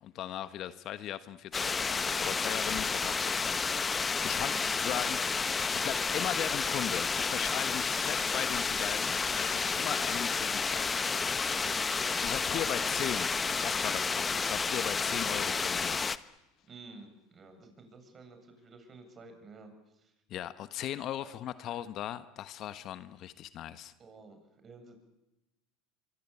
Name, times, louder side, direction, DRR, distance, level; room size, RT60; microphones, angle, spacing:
voice 1, 0.0-11.0 12.2-13.3 13.6-16.0 20.3-23.9, left 11 dB, 50° left, 12 dB, 1.3 m, -38 dB
sound 1, 1.5-16.2, left 5 dB, 20° left, 1.2 m, -31 dB
voice 2, 4.3-4.7 7.8-8.1 11.5-11.9 12.7-13.1 16.7-20.1 21.6-21.8 24.0-25.0, right 3 dB, 30° right, 7 dB, 7.9 m, -51 dB
25.5 x 24.5 x 8.6 m, 0.94 s
hypercardioid pair, 90°, 0 cm